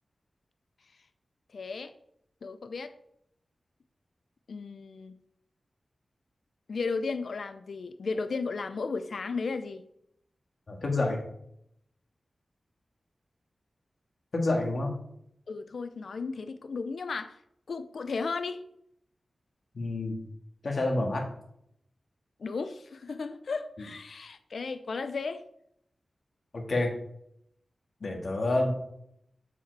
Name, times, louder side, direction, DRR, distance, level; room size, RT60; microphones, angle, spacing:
voice 1, 1.5-1.9 2.4-2.9 4.5-5.1 6.7-9.8 15.5-17.4 17.7-18.6 22.4-25.4, left 4 dB, 75° left, 10 dB, 0.5 m, -34 dB
voice 2, 10.7-11.2 14.3-14.9 19.7-20.2 20.6-21.3 26.5-27.0 28.0-28.7, left 2 dB, 60° left, 1 dB, 1.8 m, -28 dB
7.2 x 4.8 x 4.7 m, 0.73 s
wide cardioid pair, 85°, 0 cm